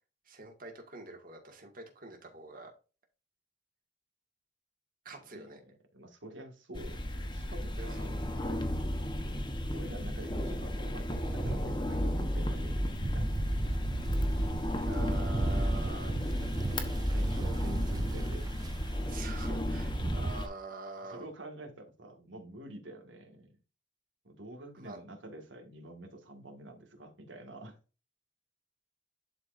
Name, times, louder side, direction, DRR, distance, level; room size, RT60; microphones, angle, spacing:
voice 1, 0.3-2.7 5.0-5.6 7.8-8.1 14.8-16.1 17.0-17.2 19.1-21.3 24.8-25.0, right 2 dB, 50° right, 2.1 m, -45 dB
voice 2, 5.3-8.1 9.2-9.4 9.7-13.3 14.9-15.3 17.1-18.5 20.1-20.2 21.0-23.6 24.2-27.8, right 1 dB, 80° right, 1.9 m, -48 dB
sound 1, 6.7-20.5, equal, 25° left, 1.2 m, -33 dB
sound 2, 10.6-20.3, right 2 dB, 20° right, 0.3 m, -37 dB
11.5 x 4.5 x 2.6 m
head